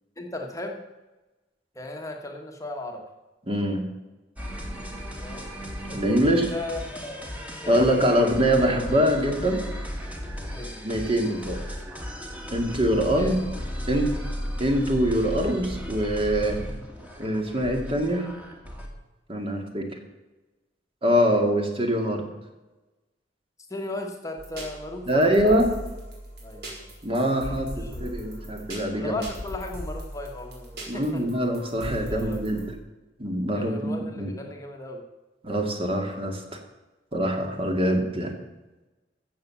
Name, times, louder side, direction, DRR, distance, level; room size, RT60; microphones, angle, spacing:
voice 1, 0.2-0.8 1.7-3.0 5.2-5.5 6.2-7.2 7.6-8.2 10.5-10.7 13.2-13.3 23.7-25.5 26.4-26.9 27.5-28.2 29.0-30.7 30.9-31.2 32.0-32.4 33.5-35.0, left 2 dB, 20° left, 2 dB, 1.3 m, -36 dB
voice 2, 3.5-3.9 5.9-6.5 7.7-9.6 10.8-11.6 12.5-13.4 13.9-14.1 14.6-16.7 17.2-18.3 19.3-19.9 21.0-22.3 25.1-25.7 27.0-29.2 30.9-32.6 33.2-34.3 35.4-36.4 37.1-38.3, equal, 30° right, 3 dB, 2.1 m, -24 dB
sound 1, 4.4-18.9, equal, 10° right, 2.0 m, -35 dB
sound 2, 24.4-32.7, equal, 65° right, 4.3 m, -39 dB
14.0 x 7.4 x 7.1 m, 1.1 s
head